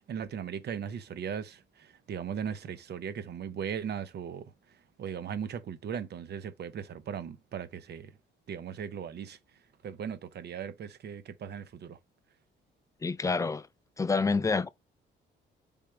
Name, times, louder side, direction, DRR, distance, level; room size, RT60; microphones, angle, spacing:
voice 1, 0.0-8.1 8.5-9.4 9.8-12.0, right 8 dB, 55° right, 0.7 m, -38 dB
voice 2, 13.0-13.7 14.0-14.7, left 4 dB, 15° left, 0.4 m, -27 dB
3.5 x 3.2 x 4.4 m
cardioid pair, 90°, 20 cm